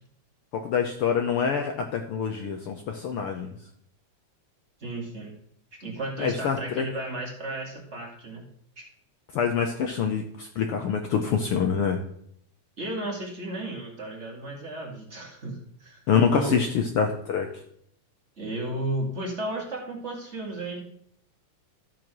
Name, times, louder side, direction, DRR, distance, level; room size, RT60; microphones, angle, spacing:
voice 1, 0.5-3.5 6.2-6.8 9.3-12.0 16.1-17.5, left 6 dB, 80° left, 5 dB, 1.2 m, -26 dB
voice 2, 4.8-5.3 5.7-8.5 8.8-8.9 12.8-16.6 18.4-20.8, right 2 dB, 25° right, -1 dB, 2.0 m, -34 dB
13.5 x 5.0 x 6.0 m, 0.68 s
omnidirectional pair, 3.5 m